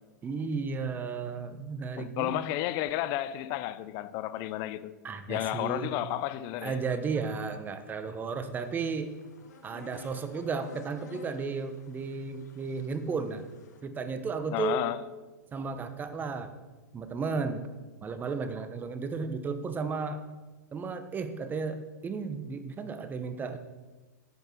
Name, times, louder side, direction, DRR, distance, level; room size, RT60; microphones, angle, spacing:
voice 1, 0.2-2.4 5.0-5.9 6.6-9.1 9.6-13.4 13.8-14.9 15.5-16.5 16.9-17.7 18.0-20.2 20.7-23.6, right 5 dB, 20° right, 1.0 m, -34 dB
voice 2, 2.0-4.9 5.3-6.8 14.5-15.0, left 14 dB, 40° left, 0.6 m, -32 dB
sound 1, 8.6-13.8, left 3 dB, 65° left, 1.7 m, -53 dB
9.4 x 7.9 x 6.3 m
hypercardioid pair, 110°, 10 cm